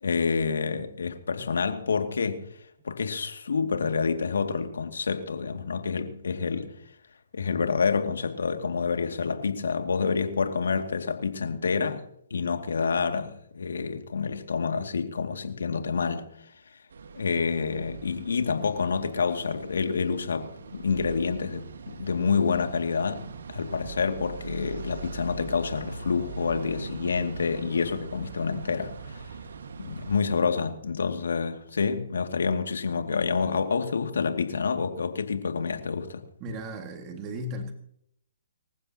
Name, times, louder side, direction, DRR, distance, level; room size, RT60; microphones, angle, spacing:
voice 1, 0.0-2.4 2.8-6.7 7.3-12.0 12.3-16.2 17.1-23.3 23.5-29.2 29.8-36.2, left 5 dB, 70° left, 2.3 m, -28 dB
sound 1, 16.9-30.2, right 4 dB, 70° right, 1.7 m, -41 dB
voice 2, 36.4-37.7, equal, 25° right, 2.0 m, -35 dB
25.5 x 15.0 x 2.9 m
figure-of-eight pair, 135°, 0 cm